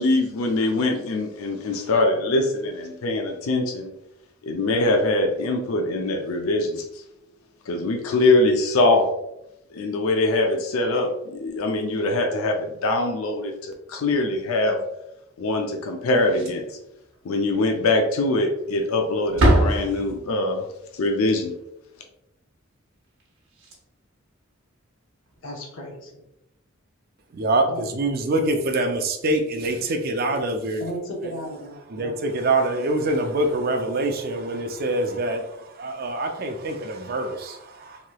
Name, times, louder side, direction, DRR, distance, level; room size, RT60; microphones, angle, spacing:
voice 1, 0.0-3.9 4.4-6.8 7.7-9.1 9.7-14.8 15.4-16.7 17.2-20.6 20.9-21.5, left 2 dB, 90° left, 3 dB, 0.4 m, -23 dB
Slam, 16.2-16.8 17.1-17.3 17.7-17.8 18.6-19.0 19.2-20.5 23.2-23.3 23.5-23.7 25.3-25.4, right 1 dB, 65° right, 0.9 m, -23 dB
voice 2, 25.4-26.2 27.6-28.1 30.8-32.2, equal, 70° left, -1 dB, 0.8 m, -35 dB
voice 3, 27.3-30.8 31.9-38.0, right 2 dB, 45° right, 4 dB, 0.4 m, -25 dB
3.0 x 2.9 x 2.2 m, 0.85 s
head